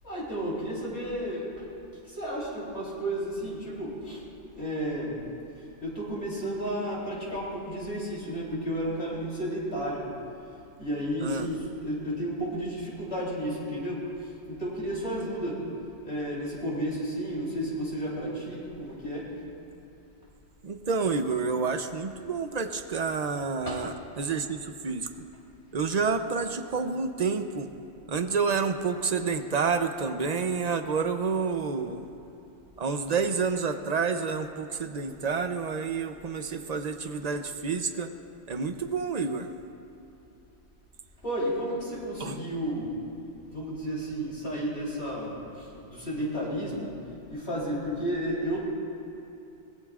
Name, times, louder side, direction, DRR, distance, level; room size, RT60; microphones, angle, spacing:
voice 1, 0.0-1.5 2.0-4.2 4.5-5.2 5.8-10.1 10.8-15.6 16.0-19.3 23.7-23.9 41.2-43.0 43.5-46.9 47.3-48.6, equal, 60° left, -6 dB, 3.8 m, -32 dB
voice 2, 20.6-25.1 25.7-27.7 28.1-32.1 32.8-38.1 38.5-39.5 42.2-42.4, right 5 dB, 40° right, 8 dB, 0.7 m, -29 dB
24.0 x 19.0 x 2.5 m, 2.8 s
omnidirectional pair, 1.2 m